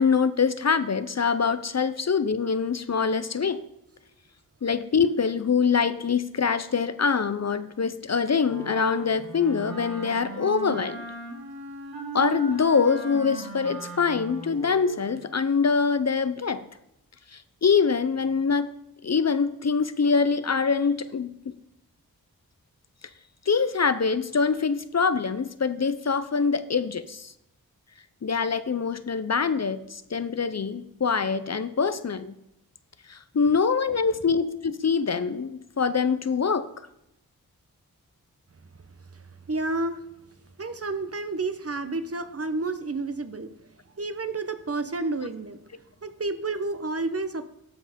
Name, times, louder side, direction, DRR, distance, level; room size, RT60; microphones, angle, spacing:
voice 1, 0.0-3.6 4.6-11.1 12.1-16.6 17.3-18.7 19.0-21.4 23.5-27.3 28.2-32.4 33.1-36.7, left 5 dB, 45° left, 13 dB, 0.6 m, -24 dB
Wind instrument woodwind instrument, 8.4-15.1, right 4 dB, 70° right, 2.4 m, -38 dB
voice 2, 39.1-40.0 40.6-43.5 44.0-45.6 46.0-47.4, right 3 dB, 40° right, 10 dB, 1.0 m, -30 dB
13.0 x 5.3 x 5.1 m, 0.84 s
cardioid pair, 40°, 37 cm